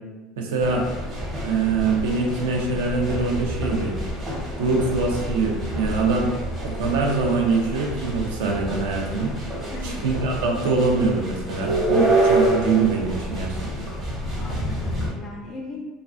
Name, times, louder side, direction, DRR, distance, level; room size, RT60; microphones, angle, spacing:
voice 1, 0.4-0.8 1.4-4.0 4.6-6.3 6.6-9.3 9.8-13.9, right 4 dB, 75° right, 0 dB, 0.5 m, -23 dB
sound 1, 0.6-15.1, right 1 dB, 40° right, 0.9 m, -27 dB
voice 2, 9.7-10.0 14.4-15.9, left 2 dB, 50° left, 0 dB, 0.3 m, -37 dB
2.3 x 2.3 x 2.4 m, 1.3 s
hypercardioid pair, 75°, 0 cm